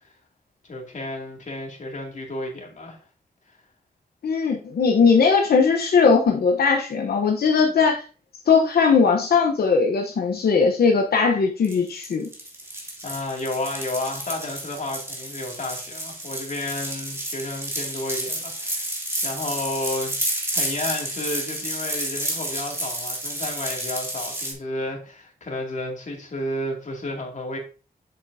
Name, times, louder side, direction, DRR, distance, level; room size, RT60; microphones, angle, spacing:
voice 1, 0.6-3.0 13.0-18.9 19.2-27.6, left 1 dB, 50° left, 0 dB, 2.4 m, -32 dB
voice 2, 4.2-8.0 8.5-12.3, left 5 dB, 85° left, 2 dB, 0.9 m, -19 dB
sound 1, 11.6-24.5, right 1 dB, 15° right, 2.4 m, -31 dB
7.7 x 7.4 x 2.7 m, 0.36 s
wide cardioid pair, 125°, 16 cm